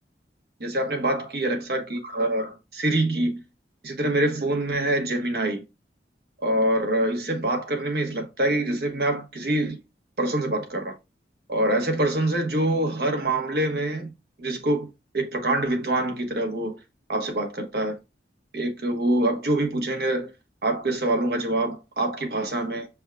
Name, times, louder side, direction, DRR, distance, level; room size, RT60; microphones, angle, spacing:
voice 1, 0.6-3.4 3.8-5.6 6.4-9.8 10.2-10.9 11.5-14.1 14.4-14.9 15.1-16.8 17.1-17.9 18.5-20.3 20.6-22.9, right 1 dB, 60° right, 1.2 m, -25 dB
6.1 x 3.5 x 2.4 m
head